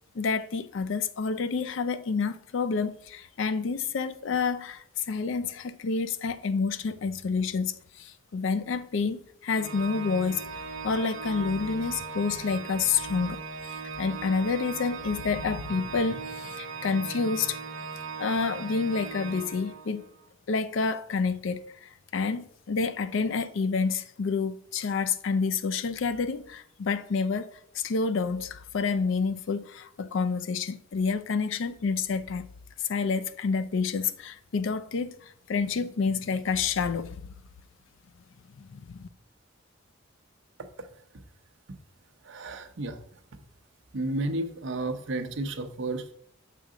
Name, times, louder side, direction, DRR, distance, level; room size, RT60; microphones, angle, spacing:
voice 1, 0.1-17.6 18.2-20.0 20.5-27.5 27.7-32.5 32.9-37.2 38.6-39.1, left 5 dB, 65° left, 0.4 m, -29 dB
Organ, 9.5-20.1, right 5 dB, 90° right, 1.0 m, -38 dB
voice 2, 42.2-43.0 43.9-46.1, right 2 dB, 65° right, 0.7 m, -32 dB
6.7 x 3.8 x 4.8 m
head